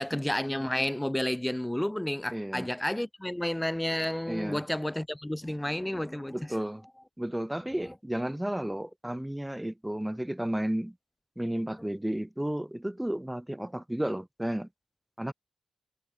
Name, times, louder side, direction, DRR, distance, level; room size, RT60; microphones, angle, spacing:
voice 1, 0.0-6.6 7.8-7.9 11.8-11.9, left 1 dB, 10° left, 1.1 m, -31 dB
voice 2, 2.3-2.7 4.3-4.6 6.3-6.8 7.2-10.9 11.4-14.7 15.2-15.3, right 1 dB, 5° right, 0.8 m, -33 dB
cardioid pair, 60°, 0 cm